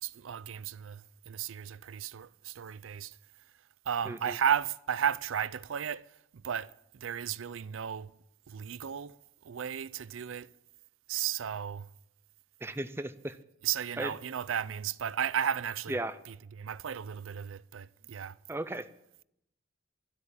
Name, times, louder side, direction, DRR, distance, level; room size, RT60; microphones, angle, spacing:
voice 1, 0.0-3.2 3.8-6.1 6.3-8.1 8.5-9.2 9.4-10.5 11.1-11.9 13.6-16.0 16.3-18.4, right 8 dB, 85° right, 0.5 m, -34 dB
voice 2, 4.1-4.4 12.6-13.4 14.0-14.1 15.9-16.2 18.5-18.9, right 1 dB, 10° right, 0.5 m, -35 dB
12.5 x 8.2 x 8.7 m
head